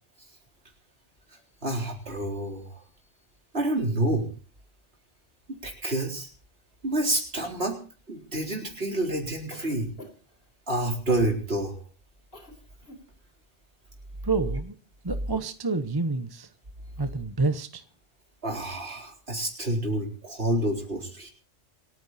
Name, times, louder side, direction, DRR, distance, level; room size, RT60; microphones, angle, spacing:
voice 1, 1.6-2.7 3.5-4.3 5.6-6.3 6.8-7.8 8.1-9.9 10.7-11.8 18.4-21.3, right 1 dB, 55° right, 4.2 m, -28 dB
Cough, 9.5-10.4 11.1-11.3 12.3-12.5 12.8-13.0, left 2 dB, 50° left, 3.9 m, -45 dB
voice 2, 14.2-14.7 15.0-16.5 17.0-17.8, right 3 dB, 20° right, 0.8 m, -28 dB
27.5 x 9.5 x 4.2 m
omnidirectional pair, 1.3 m